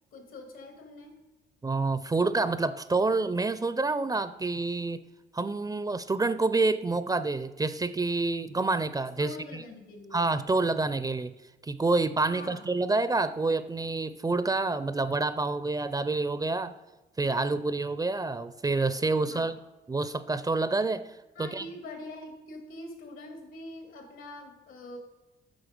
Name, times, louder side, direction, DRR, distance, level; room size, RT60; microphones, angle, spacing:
voice 1, 0.1-1.2 9.2-10.2 12.3-12.7 19.2-19.6 21.3-25.0, left 2 dB, 85° left, 4 dB, 2.4 m, -44 dB
voice 2, 1.6-5.0 5.3-9.6 10.1-11.3 11.6-16.8 17.2-19.6 19.9-21.7, right 3 dB, 20° right, 14 dB, 0.4 m, -28 dB
9.0 x 6.4 x 5.2 m, 1.1 s
cardioid pair, 90°, 20 cm